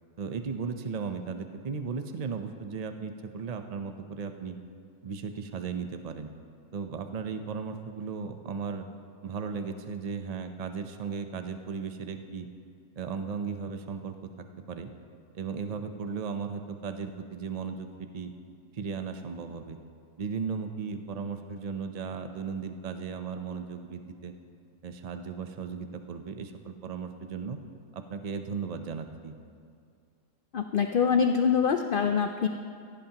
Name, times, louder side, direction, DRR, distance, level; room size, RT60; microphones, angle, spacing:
voice 1, 0.2-4.6 5.0-6.3 6.7-8.9 9.2-12.5 13.0-14.2 14.7-14.9 15.3-18.3 18.7-19.8 20.2-24.3 24.8-27.6 27.9-29.4, right 5 dB, 45° right, 7 dB, 0.5 m, -36 dB
voice 2, 30.5-32.5, left 6 dB, 85° left, 6 dB, 0.4 m, -24 dB
16.5 x 15.5 x 2.9 m, 2.3 s
omnidirectional pair, 1.5 m